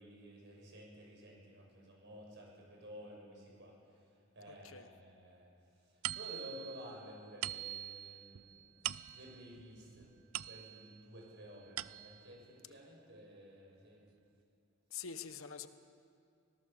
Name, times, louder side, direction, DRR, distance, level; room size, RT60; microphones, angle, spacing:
voice 1, 0.0-5.5 5.8-8.8 9.1-10.1 10.4-14.0, equal, 60° right, -1 dB, 6.8 m, -53 dB
voice 2, 4.5-4.9 14.9-15.7, left 7 dB, 75° left, 10 dB, 1.0 m, -45 dB
sound 1, 6.0-11.0 11.5-12.4, right 13 dB, 85° right, 0.5 m, -44 dB
25.5 x 17.5 x 7.1 m, 2.6 s
head